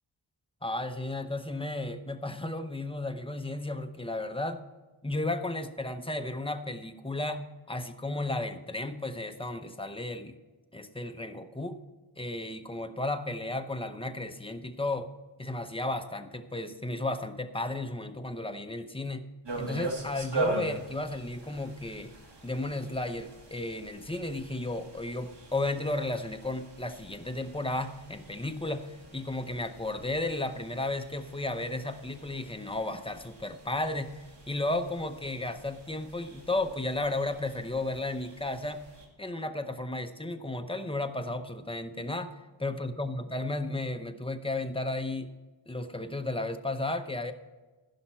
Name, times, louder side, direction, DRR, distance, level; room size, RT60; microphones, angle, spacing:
voice 1, 0.6-4.6 5.0-10.4 10.7-11.8 12.2-15.1 15.4-19.2 19.6-22.1 22.4-38.8 39.2-45.3 45.7-47.3, left 2 dB, 10° left, 7 dB, 0.7 m, -34 dB
sound 1, 19.5-39.1, right 2 dB, 60° right, 2.1 m, -42 dB
15.5 x 5.7 x 4.4 m, 1.2 s
wide cardioid pair, 110°, 48 cm